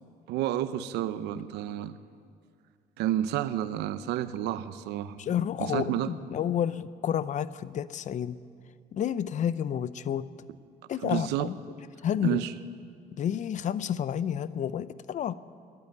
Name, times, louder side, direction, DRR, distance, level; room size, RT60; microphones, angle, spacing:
voice 1, 0.3-2.0 3.0-5.2 5.6-6.1 11.0-11.5 12.2-12.5, right 12 dB, 85° right, 13 dB, 0.7 m, -30 dB
voice 2, 5.2-8.4 8.9-10.3 10.9-11.6 12.0-12.4 13.1-15.3, left 9 dB, 45° left, 16 dB, 0.6 m, -30 dB
13.5 x 11.5 x 9.6 m, 2.3 s
cardioid pair, 110°, 17 cm